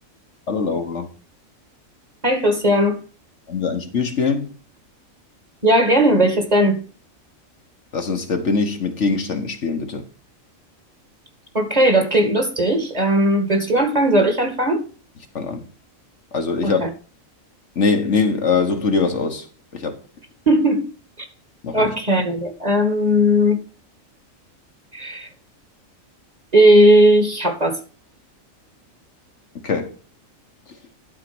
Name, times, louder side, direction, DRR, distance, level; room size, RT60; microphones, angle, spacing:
voice 1, 0.5-1.1 3.5-4.5 7.9-10.0 15.3-15.6 16.3-16.8 17.7-19.4 19.7-19.9 21.6-21.9 29.6-29.9, left 4 dB, 60° left, 1.5 m, -22 dB
voice 2, 2.2-3.0 5.6-6.8 11.5-14.8 16.6-16.9 20.5-20.8 21.7-23.6 24.9-25.3 26.5-27.8, equal, 30° right, 2.2 m, -17 dB
11.5 x 4.6 x 6.1 m
omnidirectional pair, 1.4 m